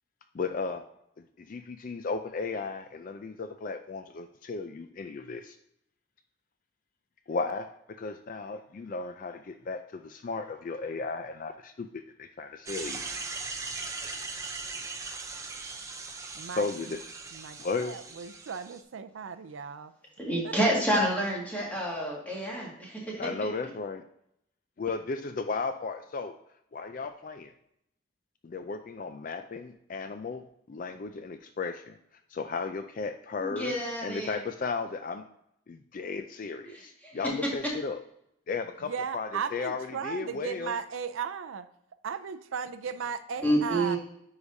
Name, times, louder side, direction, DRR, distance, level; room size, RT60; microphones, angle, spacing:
voice 1, 0.3-0.8 1.4-5.6 7.3-7.7 8.0-13.1 16.6-17.0 17.6-18.0 23.2-24.0 24.8-26.3 26.7-27.5 28.4-32.0 32.3-33.7 34.0-35.2 35.7-38.0 38.5-40.8, left 4 dB, 40° left, 8 dB, 0.3 m, -35 dB
sound 1, 12.7-18.8, right 3 dB, 15° right, 0.5 m, -39 dB
voice 2, 16.3-17.0 17.3-19.9 20.4-20.5 38.8-41.7 42.0-44.0, right 6 dB, 75° right, 11 dB, 0.4 m, -36 dB
voice 3, 20.2-23.5 33.4-34.4 36.7-37.5 43.4-44.0, right 1 dB, 10° left, -4 dB, 1.9 m, -29 dB
9.8 x 4.9 x 2.6 m, 0.76 s
head